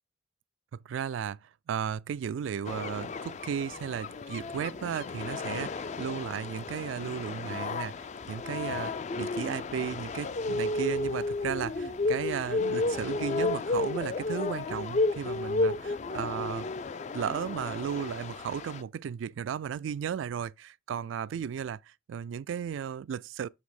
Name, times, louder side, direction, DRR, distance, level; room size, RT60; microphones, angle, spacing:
voice 1, 0.9-16.7 17.1-21.8 22.1-23.5, right 8 dB, 75° right, 0.3 m, -35 dB
Heligoland Beach, 2.6-18.8, left 3 dB, 35° left, 0.3 m, -33 dB
7.4 x 3.4 x 4.8 m
head